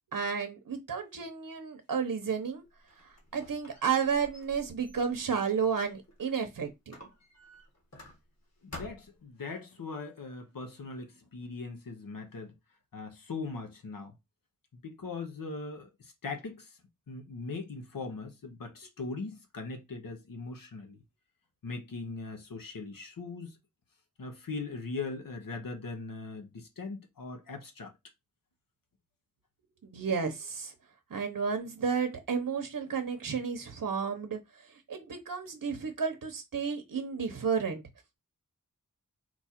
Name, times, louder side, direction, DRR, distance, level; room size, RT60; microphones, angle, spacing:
voice 1, 0.1-2.6 3.3-6.9 29.8-30.7 31.1-37.8, right 6 dB, 80° right, 0.8 m, -32 dB
Squeak, 2.6-6.4 6.9-8.4 8.7-9.3, left 1 dB, 50° left, 1.5 m, -50 dB
voice 2, 8.6-12.5 12.9-14.1 14.8-16.8 17.1-21.0 21.6-23.6 24.2-27.9, left 3 dB, 85° left, 0.9 m, -40 dB
4.3 x 2.4 x 4.3 m
wide cardioid pair, 85°, 33 cm